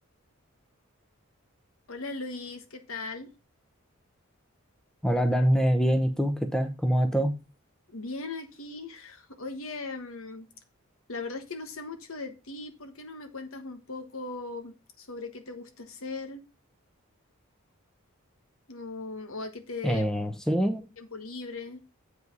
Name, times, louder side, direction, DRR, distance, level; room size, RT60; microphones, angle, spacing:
voice 1, 1.9-3.3 7.9-10.5 11.1-16.4 18.7-20.1 21.0-21.8, left 3 dB, 70° left, 6 dB, 1.3 m, -38 dB
voice 2, 5.0-7.3 19.8-20.8, equal, 5° left, 7 dB, 0.7 m, -24 dB
8.0 x 5.2 x 5.4 m, 0.28 s
head